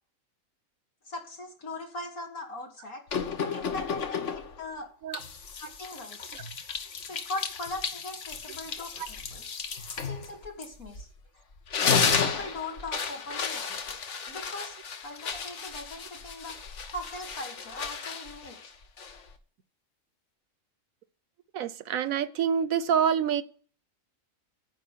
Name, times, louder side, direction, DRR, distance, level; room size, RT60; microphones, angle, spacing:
voice 1, 1.1-3.0 3.4-4.9 5.1-5.2 5.6-6.3 7.1-9.5 10.0-11.1 12.2-14.0 14.3-14.8 15.0-16.6 16.9-18.7, left 2 dB, 85° left, 2.8 m, -40 dB
sound 1, 3.1-4.6 5.1-11.2 11.5-19.4, left 6 dB, 60° left, 1.4 m, -33 dB
voice 2, 21.5-23.4, right 8 dB, 75° right, 1.2 m, -27 dB
10.0 x 5.2 x 8.3 m
omnidirectional pair, 1.5 m